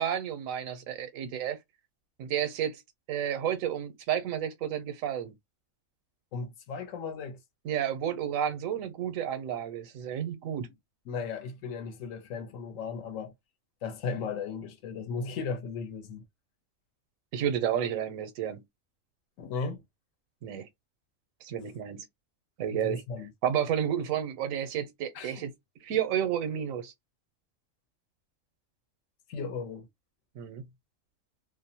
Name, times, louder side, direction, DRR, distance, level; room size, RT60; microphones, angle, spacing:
voice 1, 0.0-1.6 2.2-2.8 3.1-5.3 7.6-10.7 17.3-18.6 20.4-20.7 21.4-22.0 22.6-23.0 23.4-25.5 25.8-26.9 30.4-30.6, right 9 dB, 90° right, 1.0 m, -31 dB
voice 2, 6.3-7.4 11.1-13.3 13.8-16.2 19.4-19.8 22.7-23.3 25.1-25.4 29.3-29.9, left 5 dB, 75° left, 1.0 m, -36 dB
2.5 x 2.0 x 2.7 m
omnidirectional pair, 1.4 m